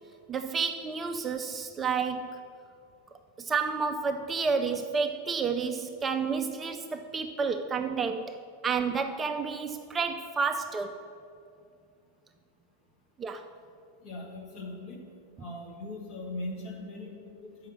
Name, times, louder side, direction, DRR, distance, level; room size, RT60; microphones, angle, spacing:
voice 1, 0.3-2.4 3.4-8.3 8.6-11.0 13.2-13.5, right 5 dB, 20° right, 7 dB, 0.4 m, -30 dB
voice 2, 14.0-15.0 15.4-17.7, left 2 dB, 40° left, 0 dB, 1.6 m, -40 dB
6.5 x 5.7 x 7.2 m, 2.4 s
figure-of-eight pair, 90°, 0 cm